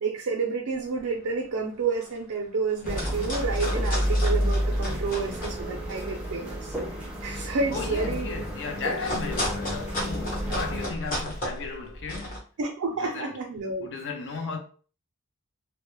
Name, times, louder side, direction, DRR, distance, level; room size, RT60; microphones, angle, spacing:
voice 1, 0.0-6.7 7.2-8.3 12.6-13.9, right 4 dB, 75° right, 0.5 m, -30 dB
sound 1, 0.9-1.2 1.6-2.3 2.7-5.6 5.9-12.4, equal, 40° left, 0.9 m, -34 dB
sound 2, 2.8-10.9, equal, 5° right, 0.5 m, -30 dB
voice 2, 7.7-12.4 13.0-13.4 13.8-14.6, left 4 dB, 55° left, 0.5 m, -34 dB
2.2 x 2.0 x 3.0 m
head